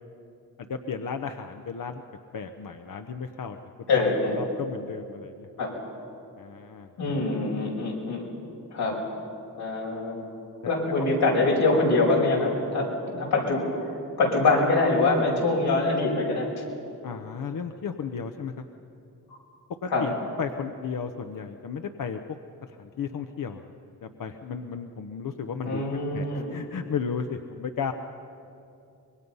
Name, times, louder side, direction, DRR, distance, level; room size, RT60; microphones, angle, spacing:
voice 1, 0.7-2.0 2.3-3.6 4.0-5.5 6.4-7.2 17.0-18.6 19.8-22.2 22.8-23.6 24.0-25.8 26.1-27.9, left 6 dB, 60° left, 6 dB, 1.0 m, -34 dB
voice 2, 3.9-4.4 5.6-5.7 7.0-8.2 8.7-9.0 9.6-10.2 10.7-16.5 19.9-20.1 25.6-26.5, left 3 dB, 90° left, -3 dB, 5.9 m, -24 dB
25.5 x 22.0 x 5.6 m, 2.6 s
cardioid pair, 65°, 38 cm